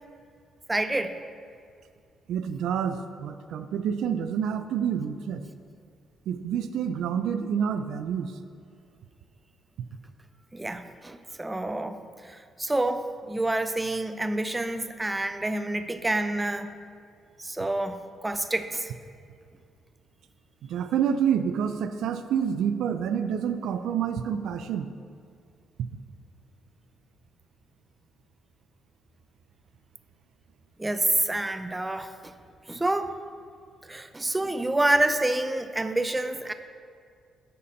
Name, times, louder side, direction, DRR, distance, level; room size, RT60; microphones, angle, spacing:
voice 1, 0.7-1.2 10.5-12.0 12.2-16.8 17.4-18.9 30.8-32.3 32.7-33.1 33.8-36.5, right 2 dB, 15° right, 10 dB, 0.5 m, -28 dB
voice 2, 2.3-5.4 6.3-8.3 20.6-24.9, right 8 dB, 80° right, 10 dB, 0.4 m, -28 dB
10.5 x 4.2 x 6.5 m, 2.3 s
cardioid pair, 90°, 0 cm